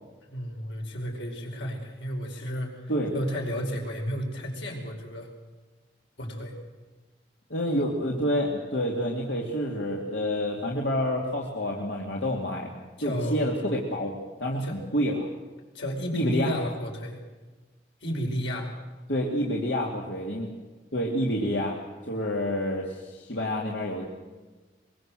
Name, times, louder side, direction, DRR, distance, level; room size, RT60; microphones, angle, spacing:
voice 1, 0.3-2.8 3.1-5.3 6.2-6.5 13.0-13.5 14.6-14.8 15.7-17.2 18.0-18.7, equal, 90° left, 1 dB, 5.1 m, -32 dB
voice 2, 7.5-12.7 13.0-14.1 14.4-14.7 14.9-15.3 16.1-16.5 19.1-20.5 20.9-21.7 22.1-24.1, equal, 70° left, -2 dB, 2.6 m, -28 dB
23.5 x 22.5 x 7.7 m, 1.3 s
head